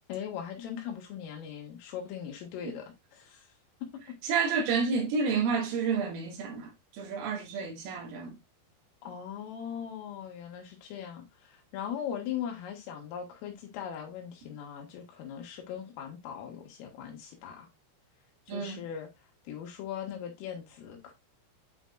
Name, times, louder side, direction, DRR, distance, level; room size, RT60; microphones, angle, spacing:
voice 1, 0.1-3.5 4.1-4.2 9.0-17.7 18.5-19.1 19.5-21.1, left 9 dB, 80° left, 4.3 m, -40 dB
voice 2, 4.2-6.7 7.0-8.4 18.5-18.8, right 5 dB, 80° right, 4.5 m, -30 dB
11.0 x 4.6 x 2.5 m
omnidirectional pair, 5.9 m